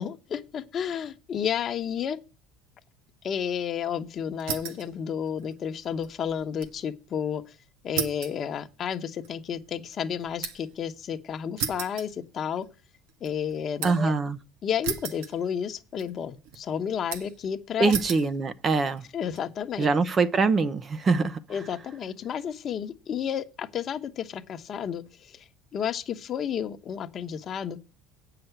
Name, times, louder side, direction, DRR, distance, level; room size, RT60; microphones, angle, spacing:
voice 1, 0.0-2.2 3.2-7.5 7.8-12.7 13.2-14.1 14.6-17.9 19.1-19.9 21.5-27.8, left 8 dB, 40° left, 1.1 m, -31 dB
sound 1, 4.4-4.9 5.3-6.8 7.1-7.2 8.0-10.8 11.6-12.7 13.1-14.1 14.8-15.7 16.0-16.6 17.1-17.5 17.9-18.3 19.0-19.4, right 8 dB, 85° right, 1.7 m, -35 dB
voice 2, 13.8-14.4 17.8-19.0 19.8-21.4, right 4 dB, 30° right, 0.8 m, -23 dB
8.7 x 5.9 x 8.0 m
cardioid pair, 125°, 0 cm